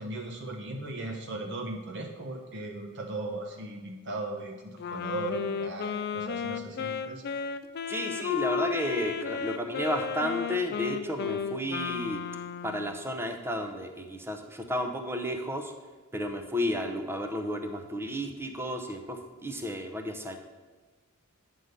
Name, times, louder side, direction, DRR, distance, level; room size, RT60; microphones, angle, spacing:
voice 1, 0.0-7.2, right 2 dB, 55° right, 1 dB, 1.2 m, -37 dB
Wind instrument woodwind instrument, 4.8-13.0, left 6 dB, 50° left, 0.4 m, -34 dB
voice 2, 7.9-12.2 12.6-15.7 16.1-20.4, equal, 10° right, 5 dB, 0.7 m, -32 dB
9.4 x 3.8 x 6.6 m, 1.4 s
head